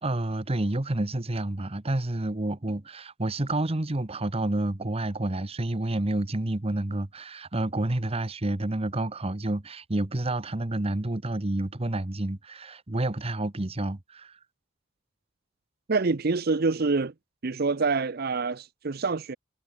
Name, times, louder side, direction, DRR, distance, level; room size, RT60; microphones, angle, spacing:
voice 1, 0.0-14.4, right 1 dB, 30° right, 1.1 m, -29 dB
voice 2, 15.9-17.1 17.4-19.4, right 4 dB, 55° right, 0.7 m, -26 dB
head